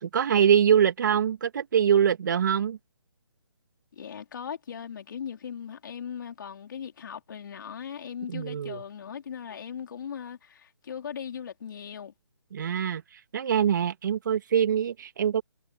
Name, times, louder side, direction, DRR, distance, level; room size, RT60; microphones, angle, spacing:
voice 1, 0.0-2.8 8.3-8.8 12.5-13.0 13.3-15.4, right 8 dB, 40° right, 2.1 m, -23 dB
voice 2, 3.9-12.1, left 8 dB, 45° left, 3.8 m, -39 dB
hypercardioid pair, 165°, 15 cm